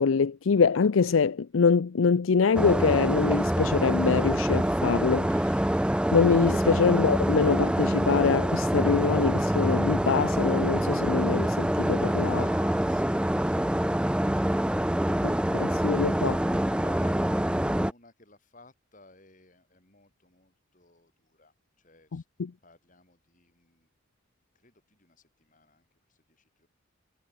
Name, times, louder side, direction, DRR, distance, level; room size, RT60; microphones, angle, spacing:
voice 1, 0.0-5.7 6.1-12.4 15.2-16.4 22.1-22.5, left 5 dB, 80° left, 0.5 m, -24 dB
sound 1, 2.5-17.9, equal, 5° right, 0.5 m, -26 dB
voice 2, 12.3-15.2 15.6-22.3 22.6-23.9 24.5-26.7, left 3 dB, 40° left, 5.8 m, -56 dB
head